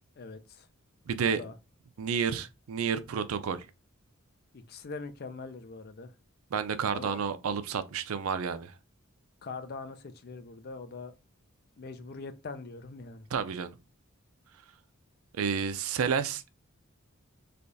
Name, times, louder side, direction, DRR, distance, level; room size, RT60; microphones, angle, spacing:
voice 1, 0.2-0.7 1.2-1.5 4.5-6.1 6.9-7.2 9.4-11.1 11.8-13.3, left 4 dB, 45° left, 0.5 m, -42 dB
voice 2, 1.1-1.4 2.0-3.7 6.5-8.7 13.3-13.7 15.3-16.5, right 6 dB, 75° right, 0.4 m, -30 dB
3.3 x 2.3 x 3.9 m
head